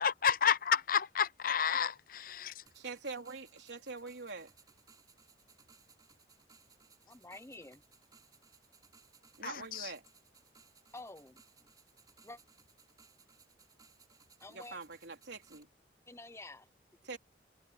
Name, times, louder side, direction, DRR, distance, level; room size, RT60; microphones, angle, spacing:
voice 1, 0.0-1.9 2.3-2.5 9.4-9.9, left 7 dB, 50° left, 0.5 m, -30 dB
sound 1, 2.7-15.6, right 5 dB, 20° right, 4.1 m, -64 dB
voice 2, 2.8-4.5 9.4-10.0 14.5-15.7 17.0-17.2, right 4 dB, 75° right, 3.5 m, -44 dB
voice 3, 7.1-7.8 10.9-11.7 12.2-12.4 14.4-14.8 16.1-16.7, left 2 dB, 15° left, 0.9 m, -50 dB
head